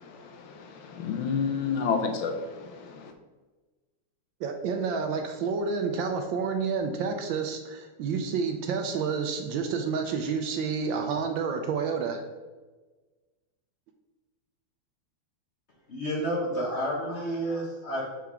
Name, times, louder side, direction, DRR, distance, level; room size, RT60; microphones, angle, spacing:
voice 1, 0.9-3.1, left 5 dB, 75° left, 4 dB, 1.4 m, -29 dB
voice 2, 4.4-12.2, right 5 dB, 75° right, 5 dB, 1.2 m, -29 dB
voice 3, 15.9-18.1, equal, 45° left, -3 dB, 0.9 m, -30 dB
6.2 x 4.5 x 3.5 m, 1.3 s
omnidirectional pair, 2.3 m